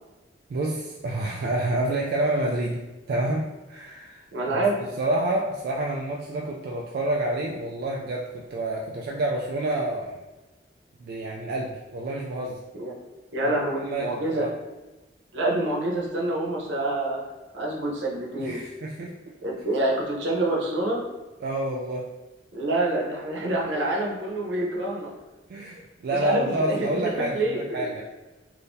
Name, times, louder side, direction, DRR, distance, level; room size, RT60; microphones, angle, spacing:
voice 1, 0.5-10.2 11.0-12.6 13.4-13.5 13.8-14.6 18.4-19.4 21.4-22.1 25.5-28.0, right 1 dB, 55° right, -1 dB, 0.3 m, -28 dB
voice 2, 4.3-4.8 12.8-12.9 13.3-14.5 15.3-17.2 17.5-18.6 19.4-21.0 22.5-25.1 26.2-27.8, right 2 dB, 80° right, -2 dB, 0.8 m, -27 dB
3.6 x 2.7 x 2.6 m, 1.1 s
head